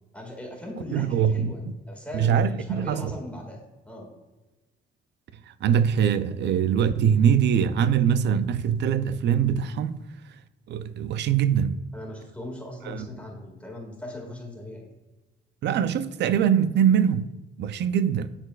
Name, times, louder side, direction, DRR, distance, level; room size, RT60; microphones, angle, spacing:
voice 1, 0.1-4.1 11.9-14.9, left 1 dB, 5° left, 1.9 m, -39 dB
voice 2, 0.9-1.5 2.1-3.1 5.5-10.0 10.7-11.8 12.8-13.1 15.6-17.3 17.6-18.4, right 8 dB, 60° right, 0.4 m, -23 dB
10.0 x 4.1 x 2.3 m
cardioid pair, 90°, 20 cm